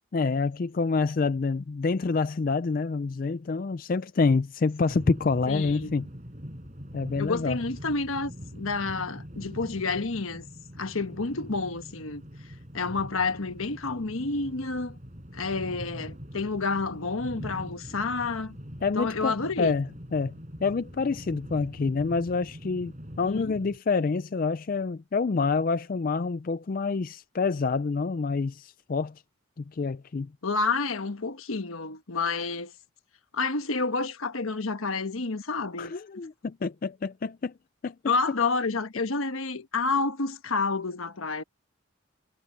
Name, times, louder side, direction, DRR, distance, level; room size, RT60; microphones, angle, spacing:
voice 1, 0.1-6.1 6.9-7.6 18.8-20.3 20.6-29.1 29.6-30.3 35.8-37.5 37.8-37.9, left 4 dB, 40° left, 0.4 m, -27 dB
sound 1, 4.9-23.8, equal, 35° right, 5.9 m, -43 dB
voice 2, 5.5-5.9 7.2-10.5 10.8-12.2 12.7-15.0 15.3-18.6 18.9-19.7 23.3-23.5 30.4-32.7 33.3-35.9 38.0-41.4, left 4 dB, 80° left, 1.3 m, -29 dB
head